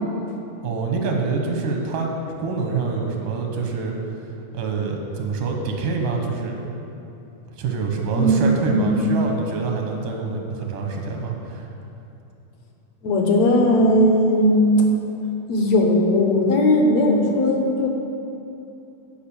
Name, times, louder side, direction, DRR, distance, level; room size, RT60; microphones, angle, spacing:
voice 1, 0.6-2.1 2.4-3.9 4.5-6.5 7.5-11.7, right 4 dB, 85° right, 2 dB, 2.7 m, -25 dB
voice 2, 8.1-9.0 13.0-14.8 15.5-17.9, left 1 dB, 65° left, 1 dB, 1.9 m, -18 dB
11.5 x 5.0 x 7.0 m, 2.8 s
omnidirectional pair, 3.6 m